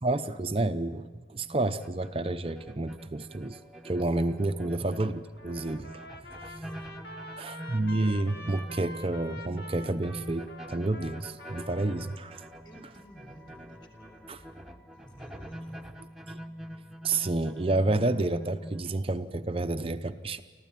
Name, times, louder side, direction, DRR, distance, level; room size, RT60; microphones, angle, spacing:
voice 1, 0.0-3.6 3.8-6.0 7.4-12.4 14.3-14.4 16.3-16.4 17.0-20.4, right 2 dB, 30° right, 10 dB, 0.7 m, -30 dB
sound 1, 1.3-18.8, equal, 5° right, 1.1 m, -45 dB
voice 2, 4.1-4.4 6.4-7.1 12.6-14.5 14.9-15.8, right 1 dB, 25° left, 3 dB, 4.9 m, -54 dB
Trumpet, 5.4-12.2, left 1 dB, 60° left, 2.1 m, -46 dB
25.5 x 15.0 x 9.1 m, 1.5 s
head